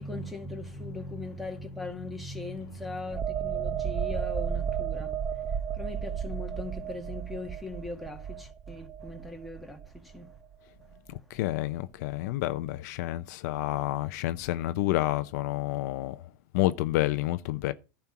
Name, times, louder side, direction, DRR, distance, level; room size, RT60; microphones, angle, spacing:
voice 1, 0.0-10.3, left 2 dB, ahead, 1.9 m, -39 dB
sound 1, 3.1-10.6 10.9-11.1, right 8 dB, 20° right, 0.7 m, -33 dB
voice 2, 11.1-16.2 16.5-17.7, left 16 dB, 65° left, 0.6 m, -29 dB
11.0 x 4.4 x 6.0 m
supercardioid pair, 130°, 10 cm